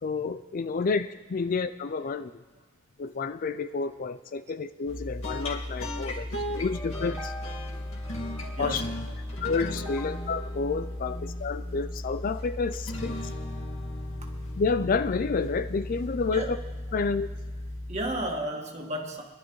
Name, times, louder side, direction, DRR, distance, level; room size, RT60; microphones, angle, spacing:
voice 1, 0.0-2.3 3.0-7.3 8.6-8.8 9.4-13.1 14.6-16.6 16.9-17.3, left 4 dB, 40° left, 0.4 m, -29 dB
sound 1, 4.9-18.4, left 1 dB, 70° left, 2.0 m, -35 dB
sound 2, 6.5-11.9, equal, 15° left, 2.6 m, -45 dB
voice 2, 17.9-19.2, right 1 dB, 30° right, 1.8 m, -32 dB
25.5 x 11.5 x 3.1 m
head